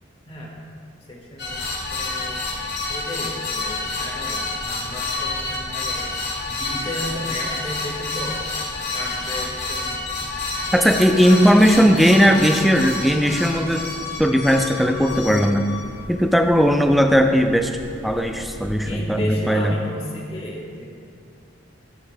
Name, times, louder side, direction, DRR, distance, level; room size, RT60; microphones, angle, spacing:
voice 1, 1.1-1.6 1.9-2.5 2.9-6.1 6.5-8.4 8.9-10.0 11.1-12.3 18.8-20.9, left 1 dB, 30° left, -2 dB, 1.3 m, -33 dB
sound 1, 1.4-19.0, left 3 dB, 55° left, 2.1 m, -29 dB
voice 2, 10.7-13.9 14.2-15.7 16.1-17.7 18.0-19.7, equal, ahead, 4 dB, 0.4 m, -17 dB
11.5 x 9.3 x 2.2 m, 2.3 s
head